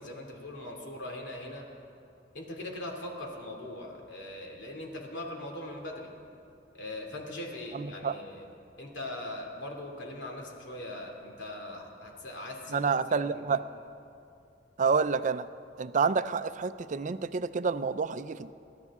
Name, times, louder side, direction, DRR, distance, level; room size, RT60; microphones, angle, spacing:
voice 1, 0.0-1.7 2.3-6.1 6.7-8.5 8.8-13.6, left 1 dB, 80° left, 1 dB, 2.6 m, -40 dB
voice 2, 7.7-8.2 12.7-13.6 14.8-15.5 15.8-18.5, right 5 dB, 45° right, 13 dB, 0.4 m, -28 dB
27.5 x 12.5 x 3.6 m, 2.5 s
head